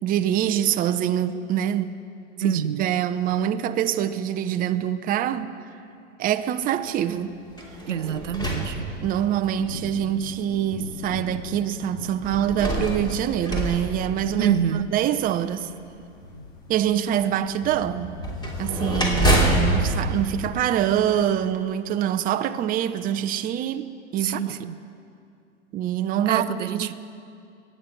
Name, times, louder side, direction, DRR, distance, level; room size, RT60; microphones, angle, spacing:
voice 1, 0.0-1.9 2.4-5.5 6.2-7.4 9.0-15.7 16.7-18.2 18.6-24.7 25.7-26.5 26.7-26.9, right 10 dB, 25° right, 0.6 m, -25 dB
voice 2, 2.4-2.9 7.9-8.9 14.4-14.9 24.2-24.7 26.3-26.9, right 9 dB, 80° right, 0.7 m, -27 dB
Thunder, 6.6-20.3, left 2 dB, 60° left, 2.4 m, -37 dB
sound 1, 7.5-9.5 10.3-10.4 12.2-14.8 18.2-21.3, right 1 dB, 10° left, 2.8 m, -26 dB
24.0 x 9.4 x 5.9 m
hypercardioid pair, 100°, 36 cm